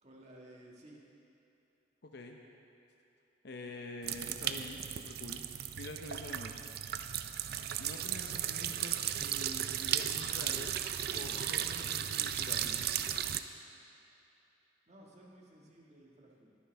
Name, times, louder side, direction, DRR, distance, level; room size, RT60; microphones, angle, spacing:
voice 1, 0.0-1.0 14.9-16.6, right 1 dB, 35° right, -3 dB, 1.8 m, -56 dB
voice 2, 2.0-2.4 3.4-5.4 5.8-6.5 7.8-10.8 11.1-12.8, left 2 dB, 60° left, 2 dB, 0.8 m, -46 dB
sound 1, 4.0-13.4, right 10 dB, 55° right, 0.4 m, -35 dB
21.0 x 9.2 x 3.5 m, 3.0 s
head